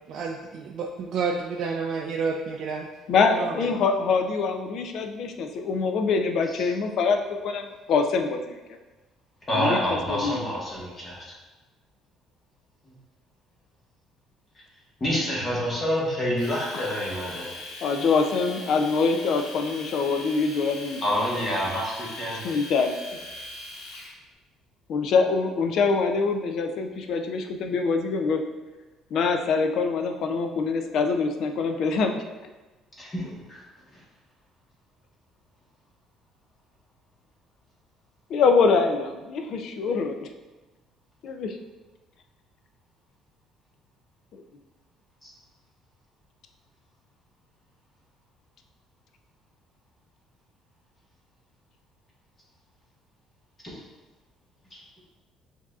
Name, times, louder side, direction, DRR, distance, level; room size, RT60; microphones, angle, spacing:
voice 1, 0.1-2.9 3.1-3.8, right 5 dB, 50° right, 1 dB, 0.3 m, -30 dB
voice 2, 3.1-8.6 9.5-10.4 16.7-16.8 17.8-21.0 22.3-22.9 24.9-28.4 29.1-32.2 38.3-40.3 41.2-41.6 44.3-44.4, left 4 dB, 55° left, 5 dB, 0.4 m, -24 dB
voice 3, 9.5-11.2 15.0-17.5 21.0-22.6 33.0-33.6 45.2-45.3 53.6-53.8, equal, 20° left, -5 dB, 1.2 m, -28 dB
Domestic sounds home sounds, 16.4-24.1, left 1 dB, 70° left, 1.1 m, -40 dB
7.1 x 2.7 x 2.4 m, 1.2 s
cardioid pair, 155°, 0 cm